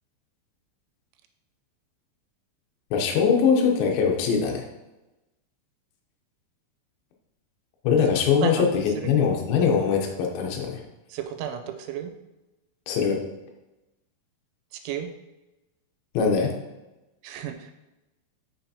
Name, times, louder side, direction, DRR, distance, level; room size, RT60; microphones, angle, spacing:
voice 1, 2.9-4.6 7.8-10.8 12.9-13.2 16.1-16.6, left 6 dB, 85° left, 1 dB, 2.1 m, -22 dB
voice 2, 11.1-12.1 14.7-15.1 17.2-17.7, right 10 dB, 90° right, 5 dB, 3.1 m, -32 dB
6.2 x 5.6 x 2.8 m, 1.0 s
omnidirectional pair, 5.4 m